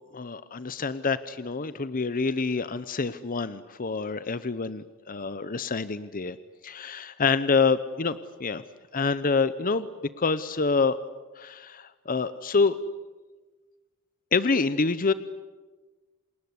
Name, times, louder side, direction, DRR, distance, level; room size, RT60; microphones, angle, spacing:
voice 1, 0.1-6.4 6.6-8.6 8.9-9.9 10.2-11.0 11.4-12.8 14.3-15.1, left 4 dB, 40° left, 14 dB, 0.8 m, -27 dB
28.5 x 20.0 x 9.9 m, 1.3 s
head